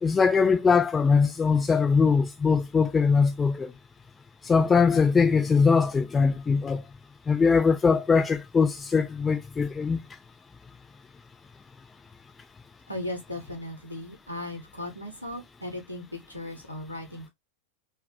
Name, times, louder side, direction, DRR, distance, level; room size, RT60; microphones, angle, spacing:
voice 1, 0.0-3.7 4.4-6.8 7.3-10.0, left 5 dB, 15° left, 0.4 m, -22 dB
voice 2, 12.9-17.3, left 1 dB, 90° left, 0.7 m, -37 dB
2.3 x 2.2 x 2.6 m
figure-of-eight pair, 90°, 0 cm